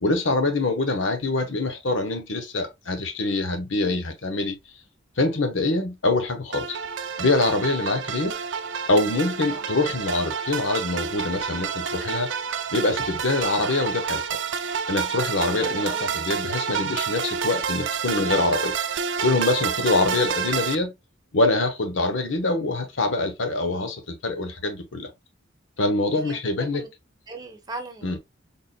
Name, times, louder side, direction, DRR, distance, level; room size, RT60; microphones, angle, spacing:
voice 1, 0.0-4.5 5.2-6.8 7.2-8.4 8.9-12.3 12.7-14.2 14.9-18.7 19.2-20.9 21.3-25.1 25.8-26.8 28.0-28.2, left 2 dB, 85° left, 1.0 m, -24 dB
sound 1, 6.5-20.7, right 6 dB, 70° right, 0.4 m, -29 dB
voice 2, 15.6-16.1 26.1-26.9 27.3-28.2, right 2 dB, 20° right, 0.9 m, -39 dB
4.1 x 3.6 x 2.2 m
head